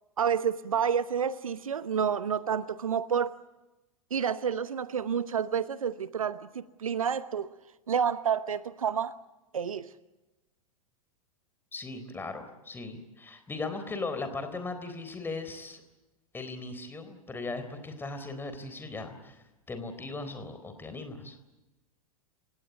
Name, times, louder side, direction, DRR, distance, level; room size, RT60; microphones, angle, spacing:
voice 1, 0.2-3.3 4.1-7.5 7.9-9.1 9.5-9.9, right 7 dB, 70° right, 1.0 m, -29 dB
voice 2, 11.7-15.8 16.3-21.4, left 3 dB, 10° left, 3.9 m, -38 dB
29.5 x 17.5 x 9.3 m
figure-of-eight pair, 95°, 18 cm